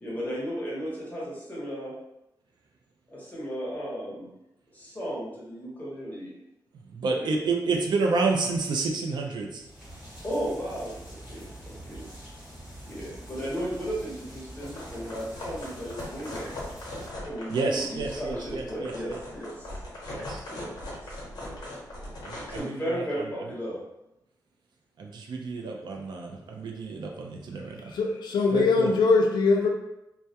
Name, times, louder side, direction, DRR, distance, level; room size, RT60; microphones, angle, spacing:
voice 1, 0.0-1.9 3.1-4.3 4.7-6.3 7.1-7.3 10.2-12.1 12.8-16.5 17.2-19.8 20.5-20.7 21.0-21.7 22.5-23.8, equal, 20° left, -6 dB, 0.8 m, -35 dB
voice 2, 6.8-9.7 17.5-19.2 20.1-20.4 22.2-23.3 25.0-28.0 28.5-28.9, right 3 dB, 75° right, 1 dB, 0.4 m, -30 dB
sound 1, 9.6-17.1, right 1 dB, 10° right, 1.0 m, -45 dB
sound 2, 14.6-22.6, left 1 dB, 60° left, 0.8 m, -40 dB
voice 3, 27.8-29.7, left 4 dB, 75° left, 1 dB, 0.4 m, -22 dB
2.2 x 2.1 x 2.7 m, 0.88 s
wide cardioid pair, 180°, 8 cm